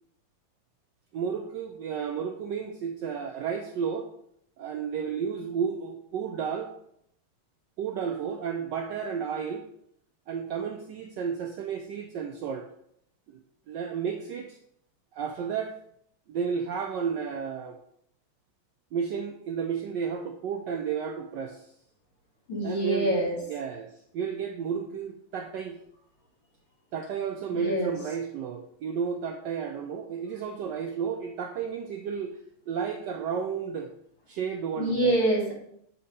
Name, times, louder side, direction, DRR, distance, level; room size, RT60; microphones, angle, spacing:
voice 1, 1.1-4.1 4.6-6.7 7.8-9.7 10.3-12.7 13.3-13.4 13.7-14.6 15.1-15.8 16.3-17.8 18.9-21.7 22.6-23.1 23.5-25.8 26.9-32.4 32.7-33.9 34.3-35.2, right 7 dB, 80° right, 4 dB, 1.0 m, -32 dB
voice 2, 22.5-23.4 27.5-28.0 34.8-35.5, right 1 dB, 70° left, -4 dB, 2.7 m, -25 dB
7.4 x 2.8 x 5.1 m, 0.71 s
omnidirectional pair, 2.4 m